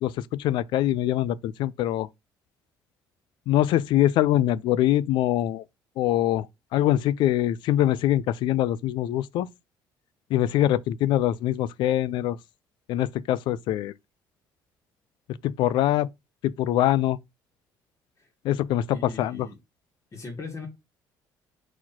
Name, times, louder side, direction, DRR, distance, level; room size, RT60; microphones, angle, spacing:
voice 1, 0.0-2.1 3.5-5.6 6.0-6.5 6.7-9.5 10.3-12.4 12.9-13.9 15.4-16.1 16.4-17.2 18.4-19.5, left 13 dB, 75° left, 0.4 m, -23 dB
voice 2, 18.9-19.5 20.1-20.7, left 3 dB, 40° left, 2.0 m, -39 dB
4.4 x 4.4 x 5.7 m
cardioid pair, 90°, 8 cm